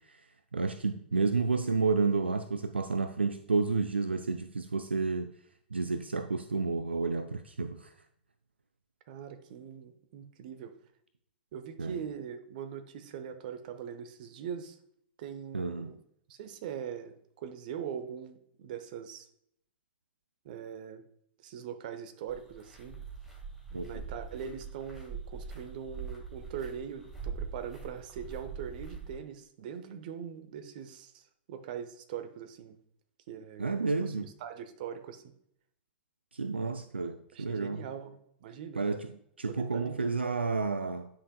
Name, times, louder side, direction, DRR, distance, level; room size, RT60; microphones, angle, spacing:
voice 1, 0.5-5.3 5.7-7.9 11.8-12.0 15.5-15.9 23.7-24.0 33.6-34.3 36.3-37.8 38.8-39.1 39.4-41.1, right 4 dB, 85° right, 9 dB, 0.4 m, -30 dB
voice 2, 9.1-10.7 11.5-14.8 15.2-16.0 16.3-19.3 20.4-21.0 21.4-23.0 23.7-32.8 33.3-34.1 34.4-35.3 37.3-38.8 39.5-39.9, right 8 dB, 55° right, 8 dB, 0.9 m, -42 dB
sound 1, 22.3-29.2, right 5 dB, 5° right, 2.6 m, -43 dB
9.8 x 5.9 x 2.2 m, 0.71 s
figure-of-eight pair, 100°, 6 cm